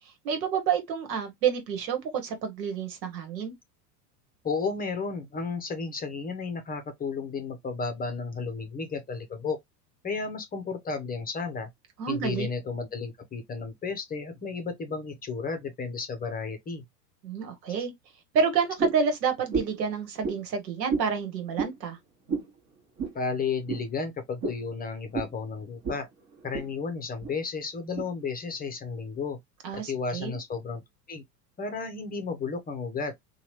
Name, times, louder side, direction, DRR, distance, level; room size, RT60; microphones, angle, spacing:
voice 1, 0.2-3.5 12.0-12.5 17.2-17.9 18.3-22.0 29.6-30.4, right 6 dB, 80° right, 1.2 m, -29 dB
voice 2, 4.4-9.6 10.0-11.7 12.1-16.8 23.1-26.1 26.4-29.4 29.7-31.2 31.6-33.1, left 4 dB, 20° left, 0.7 m, -33 dB
sound 1, 18.8-19.1 19.5-19.8 20.2-20.4 20.9-21.1 21.5-21.8 22.3-22.5 23.0-23.2 23.7-23.8 24.4-24.6 25.1-25.3 25.8-26.0 26.3-26.7 27.2-27.3 28.0-28.1, right 4 dB, 30° right, 1.1 m, -30 dB
2.9 x 2.4 x 3.1 m
hypercardioid pair, 100°, 49 cm